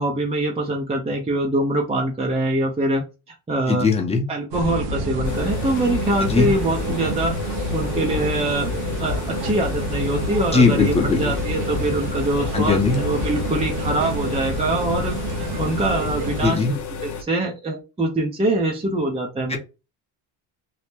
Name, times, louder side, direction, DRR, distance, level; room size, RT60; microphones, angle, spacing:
voice 1, 0.0-3.9 4.3-8.7 9.0-15.2 15.6-19.6, right 1 dB, 15° right, 0 dB, 0.6 m, -24 dB
voice 2, 3.7-4.2 6.2-6.5 10.5-11.3 12.5-13.0 16.4-16.7 19.5-19.6, left 4 dB, 15° left, 1 dB, 0.9 m, -19 dB
sound 1, 4.5-16.5, right 1 dB, 90° right, 0.9 m, -28 dB
sound 2, 5.2-17.2, left 5 dB, 45° left, 0.7 m, -32 dB
2.9 x 2.1 x 3.4 m, 0.29 s
cardioid pair, 100°, 43 cm